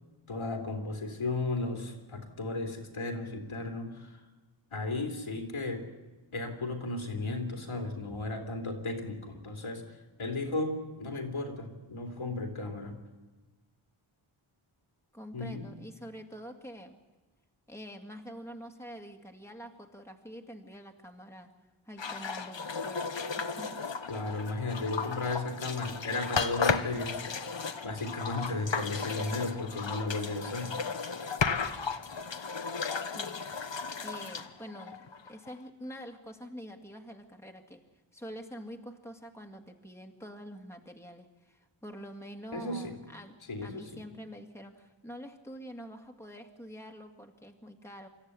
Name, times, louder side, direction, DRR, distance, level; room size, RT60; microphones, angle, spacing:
voice 1, 0.3-4.2 4.7-5.9 6.3-9.9 10.2-13.0 15.3-15.7 24.1-27.3 27.8-30.8 42.5-43.0 43.5-44.0, left 2 dB, 85° left, 3 dB, 3.1 m, -35 dB
voice 2, 15.1-16.9 17.7-21.5 21.9-23.1 23.3-23.8 33.2-33.4 34.0-37.8 38.1-43.4 43.6-48.1, equal, 5° left, 3 dB, 2.2 m, -46 dB
sound 1, 22.0-35.5, left 5 dB, 65° left, 1.3 m, -34 dB
25.5 x 14.0 x 9.8 m, 1.2 s
wide cardioid pair, 65°, 48 cm